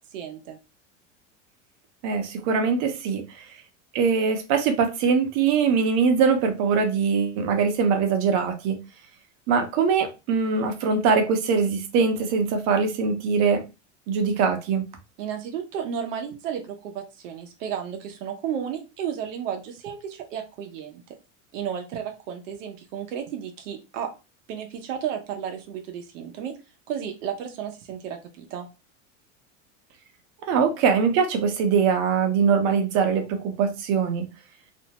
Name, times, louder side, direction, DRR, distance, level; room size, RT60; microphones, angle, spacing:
voice 1, 0.1-0.6 15.2-21.0 21.5-24.1 24.5-26.5 26.9-28.7, right 8 dB, 90° right, 4 dB, 0.7 m, -33 dB
voice 2, 2.0-3.5 3.9-8.8 9.5-13.6 14.1-14.8 30.5-34.2, right 5 dB, 45° right, 5 dB, 0.7 m, -22 dB
2.5 x 2.1 x 2.8 m, 0.28 s
supercardioid pair, 145°, 37 cm